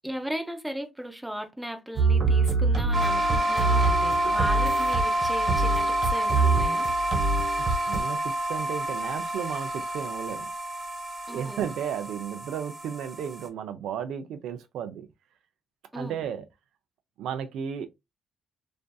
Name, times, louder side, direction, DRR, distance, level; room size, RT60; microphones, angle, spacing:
voice 1, 0.0-6.9 11.3-11.7 15.9-16.2, equal, 5° right, 0.6 m, -37 dB
sound 1, 2.0-8.0, right 3 dB, 55° right, 1.2 m, -25 dB
sound 2, 2.9-13.5, right 1 dB, 30° right, 0.8 m, -28 dB
voice 2, 7.7-10.5 11.3-15.1 15.9-16.4 17.2-17.9, right 8 dB, 80° right, 0.3 m, -34 dB
2.5 x 2.4 x 2.2 m
cardioid pair, 90°, 0 cm